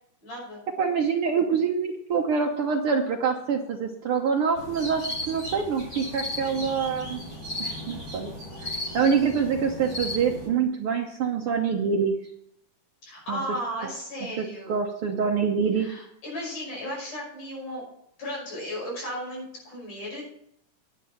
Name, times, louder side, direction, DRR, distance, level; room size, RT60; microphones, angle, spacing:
voice 1, 0.2-0.6 13.0-14.8 15.7-17.8 18.2-20.2, equal, 70° left, -2 dB, 7.1 m, -35 dB
voice 2, 0.8-7.2 7.6-8.3 8.6-12.1 13.3-13.4 14.4-15.9, right 6 dB, 80° right, 2 dB, 1.2 m, -25 dB
sound 1, 4.6-10.5, left 1 dB, 40° left, 6.1 m, -35 dB
10.0 x 8.4 x 5.6 m, 0.73 s
omnidirectional pair, 3.7 m